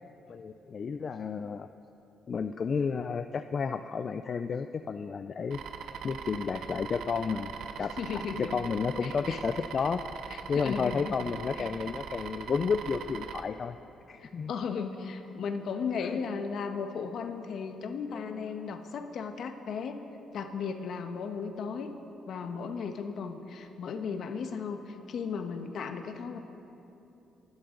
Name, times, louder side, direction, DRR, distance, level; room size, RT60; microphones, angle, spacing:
voice 1, 0.3-1.7 2.3-5.6 5.9-10.0 10.5-13.8 14.1-14.5 16.0-16.2 18.1-18.5, left 5 dB, 45° left, 9 dB, 0.4 m, -32 dB
sound 1, 5.5-13.4, right 7 dB, 70° right, 0.9 m, -41 dB
voice 2, 8.0-8.6 9.0-9.4 10.3-11.1 11.6-11.9 14.2-20.0 20.3-21.9 22.3-26.4, left 5 dB, 65° left, 6 dB, 1.3 m, -36 dB
28.0 x 12.0 x 3.9 m, 2.9 s
cardioid pair, 90°, 0 cm